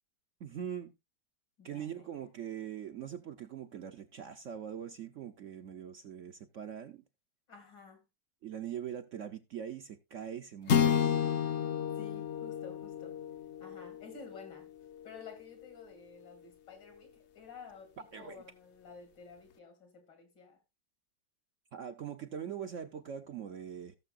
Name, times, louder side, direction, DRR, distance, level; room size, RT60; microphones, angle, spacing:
voice 1, 0.4-0.9 1.6-7.0 8.4-11.4 18.1-18.4 21.7-23.9, right 9 dB, 60° right, 0.8 m, -42 dB
voice 2, 1.6-2.3 7.5-8.0 11.9-13.2 13.6-14.7 15.0-20.6, left 5 dB, 80° left, 3.2 m, -52 dB
sound 1, 10.7-15.2, left 8 dB, 55° left, 0.8 m, -32 dB
17.5 x 6.7 x 2.5 m
omnidirectional pair, 1.9 m